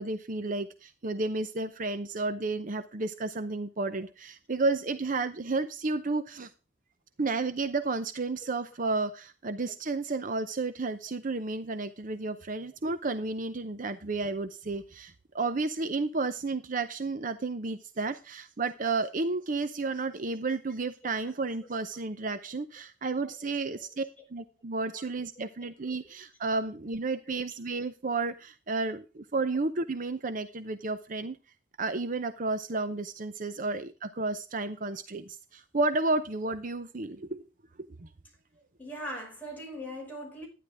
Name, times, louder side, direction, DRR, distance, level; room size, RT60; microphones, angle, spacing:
voice 1, 0.0-6.5 7.2-24.0 24.3-31.4 31.8-37.4 38.0-38.1, right 3 dB, 45° right, 0.7 m, -32 dB
voice 2, 38.8-40.5, equal, 10° left, 5.4 m, -40 dB
12.0 x 10.0 x 3.5 m
head